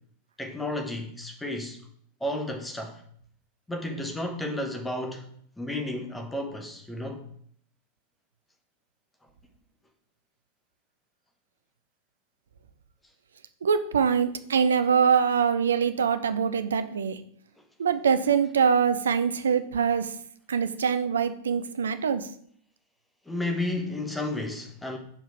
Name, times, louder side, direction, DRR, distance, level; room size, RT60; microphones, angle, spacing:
voice 1, 0.4-1.8 2.2-3.0 3.7-5.3 5.6-7.3 23.3-25.0, left 1 dB, 5° left, 1.1 m, -32 dB
voice 2, 13.6-17.2 17.8-20.1 20.5-22.3, right 6 dB, 65° right, 0.5 m, -24 dB
6.7 x 4.6 x 4.5 m
figure-of-eight pair, 90°, 0 cm